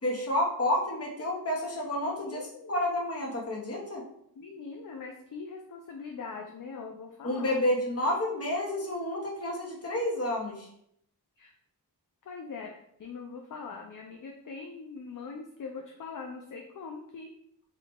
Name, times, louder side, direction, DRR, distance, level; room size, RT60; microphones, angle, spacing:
voice 1, 0.0-4.0 7.2-10.7, left 1 dB, 35° left, -2 dB, 1.1 m, -30 dB
voice 2, 2.2-3.0 4.4-7.7 11.4-11.5 12.2-12.7 13.0-17.3, left 4 dB, 50° left, 2 dB, 0.5 m, -42 dB
4.7 x 2.3 x 3.4 m, 0.72 s
wide cardioid pair, 100°, 40 cm